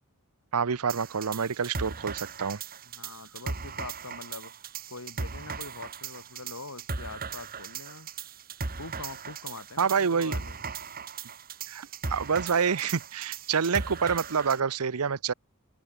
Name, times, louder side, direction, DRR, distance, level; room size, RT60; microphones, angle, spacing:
voice 1, 0.5-2.6 9.8-10.3 11.7-15.3, right 6 dB, 75° right, 0.7 m, -27 dB
sound 1, 0.9-14.6, right 4 dB, 40° right, 1.6 m, -38 dB
voice 2, 2.8-4.5 4.9-8.1 8.8-10.6, left 3 dB, 75° left, 4.7 m, -43 dB
open air
head